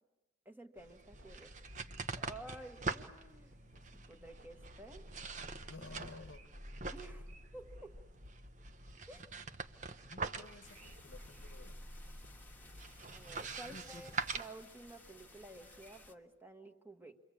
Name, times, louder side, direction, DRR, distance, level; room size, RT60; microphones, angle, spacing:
voice 1, 0.4-1.5 2.1-3.5 3.9-5.0 6.9-7.9 9.1-9.2 13.1-17.2, right 2 dB, 10° right, 5 dB, 1.5 m, -52 dB
sound 1, 0.8-16.1, right 4 dB, 40° right, 1.0 m, -45 dB
sound 2, 1.1-14.4, equal, 70° right, 2.9 m, -54 dB
voice 2, 5.7-6.4 10.0-11.8 13.7-14.1, left 3 dB, 75° left, 10 dB, 1.0 m, -53 dB
sound 3, 10.6-16.1, left 3 dB, 10° left, 1.4 m, -59 dB
28.5 x 23.5 x 8.5 m, 1.1 s
head